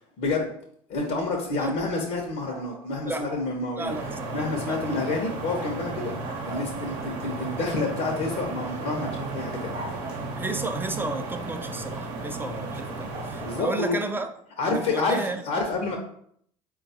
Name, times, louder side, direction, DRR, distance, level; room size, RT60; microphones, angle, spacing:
voice 1, 0.2-0.5 0.9-3.9 4.3-6.1 6.5-9.7 13.4-13.9 14.6-16.0, left 3 dB, 60° left, 1 dB, 0.7 m, -28 dB
sound 1, 2.5-3.5 5.5-5.8 6.2-7.0 9.0-10.4 13.1-13.5, right 2 dB, 30° right, 0.9 m, -42 dB
voice 2, 3.8-4.4 4.7-4.8 10.4-14.3 14.6-15.4, right 2 dB, 10° right, 6 dB, 0.4 m, -32 dB
sound 2, 3.8-13.6, right 3 dB, 70° right, 0.8 m, -34 dB
3.8 x 2.3 x 2.7 m, 0.66 s
hypercardioid pair, 75°, 17 cm